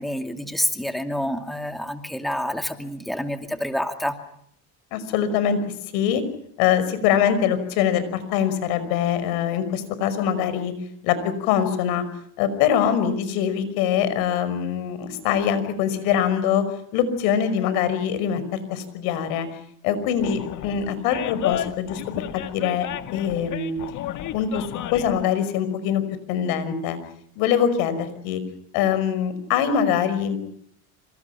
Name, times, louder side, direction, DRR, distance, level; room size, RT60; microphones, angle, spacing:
voice 1, 0.0-4.1, left 1 dB, ahead, 6 dB, 2.4 m, -28 dB
voice 2, 4.9-5.6 5.9-6.2 6.6-10.7 11.0-12.0 12.4-16.6 16.9-19.5 19.8-22.2 22.5-23.8 24.3-24.7 24.9-26.0 26.3-27.0 27.4-28.4 28.7-30.4, left 8 dB, 80° left, 13 dB, 5.5 m, -23 dB
Animal, 20.2-25.2, left 12 dB, 50° left, 1.9 m, -32 dB
27.5 x 26.5 x 5.8 m, 0.69 s
cardioid pair, 115°, 37 cm